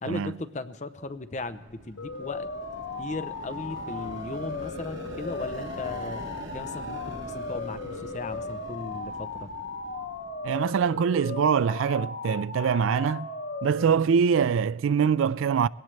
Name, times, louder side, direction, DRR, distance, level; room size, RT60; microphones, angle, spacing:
voice 1, 0.0-2.5 3.0-6.2 6.5-9.5, left 3 dB, 35° left, 0.6 m, -37 dB
sound 1, 1.1-10.9, right 1 dB, 70° right, 1.9 m, -44 dB
sound 2, 2.0-14.0, left 3 dB, 65° left, 1.0 m, -37 dB
voice 2, 10.4-13.3 13.6-15.7, right 6 dB, 90° right, 0.3 m, -24 dB
21.0 x 17.5 x 3.2 m
head